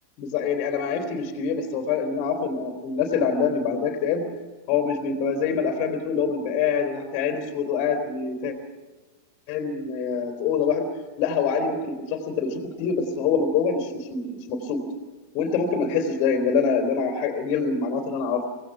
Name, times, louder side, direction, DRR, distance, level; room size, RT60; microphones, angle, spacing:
voice 1, 0.2-4.2 4.7-8.5 9.5-10.9 11.2-14.8 15.3-18.4, left 5 dB, 45° left, 3 dB, 3.3 m, -25 dB
25.0 x 18.0 x 6.0 m, 1.3 s
figure-of-eight pair, 95°, 0 cm